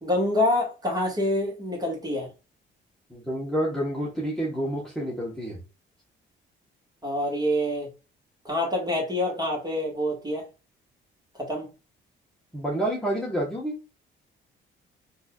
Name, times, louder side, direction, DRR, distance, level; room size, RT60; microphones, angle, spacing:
voice 1, 0.0-2.3 7.0-7.9 8.5-10.4 11.4-11.7, left 1 dB, 20° right, 1.8 m, -26 dB
voice 2, 3.1-5.6 12.5-13.8, right 1 dB, 5° left, 1.2 m, -29 dB
4.0 x 2.8 x 2.4 m
cardioid pair, 90°, 20 cm